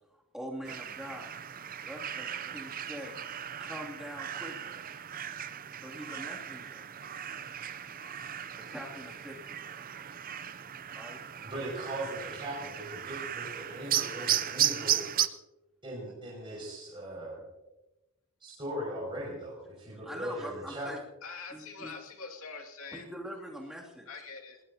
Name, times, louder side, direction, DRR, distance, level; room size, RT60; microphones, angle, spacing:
voice 1, 0.3-1.3 1.8-3.2 3.6-4.8 5.8-6.9 8.7-9.6 10.9-11.2 20.0-21.0 21.5-22.0 22.9-24.1, equal, ahead, -2 dB, 2.7 m, -43 dB
sound 1, 0.6-15.3, right 10 dB, 40° right, 0.6 m, -35 dB
voice 2, 11.4-15.0 15.8-17.4 18.4-20.9, right 1 dB, 25° right, -5 dB, 6.1 m, -39 dB
voice 3, 21.2-23.1 24.1-24.6, left 4 dB, 70° left, 2 dB, 2.5 m, -44 dB
21.5 x 19.5 x 2.9 m, 1.0 s
head